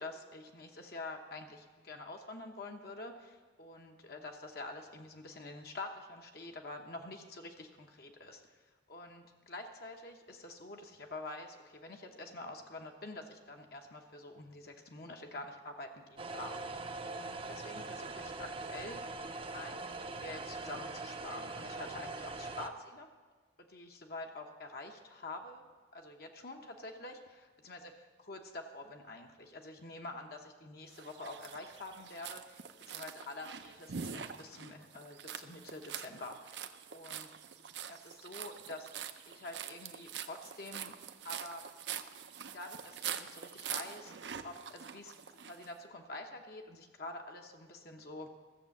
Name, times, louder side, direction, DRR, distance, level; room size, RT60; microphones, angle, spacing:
voice 1, 0.0-19.2 19.5-23.1 23.6-25.6 25.9-27.9 28.2-37.3 37.9-38.9 39.3-40.9 41.2-41.6 42.5-44.1 44.4-48.3, left 2 dB, 55° left, 3 dB, 0.9 m, -47 dB
sound 1, 16.2-22.7, right 3 dB, 30° right, 0.6 m, -42 dB
sound 2, 30.9-45.7, right 8 dB, 70° right, 0.6 m, -45 dB
14.0 x 7.2 x 7.1 m, 1.4 s
head